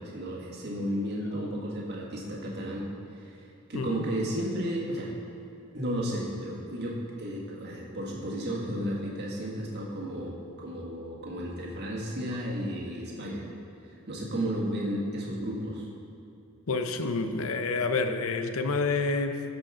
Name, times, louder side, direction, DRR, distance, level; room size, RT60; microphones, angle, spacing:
voice 1, 0.0-2.8 3.1-5.1 5.7-13.4 13.8-15.9, equal, 50° right, -4 dB, 1.7 m, -33 dB
voice 2, 3.7-4.1 16.7-19.4, left 3 dB, 70° left, 8 dB, 0.7 m, -28 dB
13.5 x 5.2 x 4.9 m, 2.8 s
head